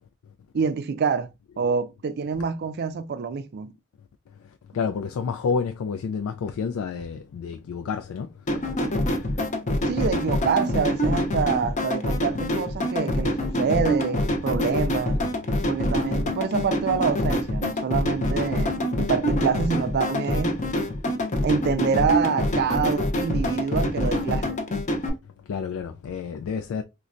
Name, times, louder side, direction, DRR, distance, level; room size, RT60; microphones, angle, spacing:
voice 1, 0.5-1.3 1.6-3.7 9.9-15.2 15.7-20.6 21.4-24.6, right 6 dB, 50° right, 0.4 m, -26 dB
voice 2, 4.7-8.3 8.5-8.6 25.5-26.8, left 5 dB, 90° left, 0.3 m, -29 dB
sound 1, 8.5-25.1, left 1 dB, 35° left, 0.6 m, -25 dB
3.9 x 2.2 x 2.5 m
head